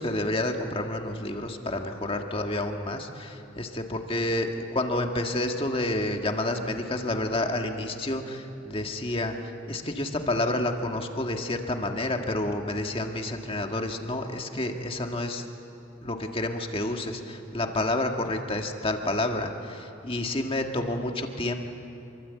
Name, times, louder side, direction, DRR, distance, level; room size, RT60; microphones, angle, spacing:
voice 1, 0.0-15.4 16.0-21.5, left 1 dB, 25° left, 4 dB, 1.7 m, -29 dB
27.0 x 23.5 x 8.3 m, 2.8 s
head